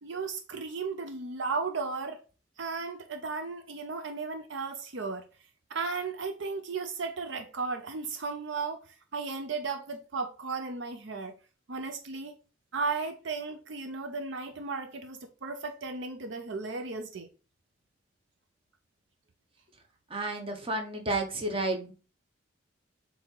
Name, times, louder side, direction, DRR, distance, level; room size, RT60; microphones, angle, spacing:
voice 1, 0.0-2.2 2.6-5.2 5.7-8.8 9.1-11.3 11.7-12.3 12.7-17.3, right 4 dB, 65° right, 0.6 m, -35 dB
voice 2, 20.1-21.9, right 2 dB, 30° right, 1.1 m, -31 dB
7.4 x 2.8 x 4.5 m
head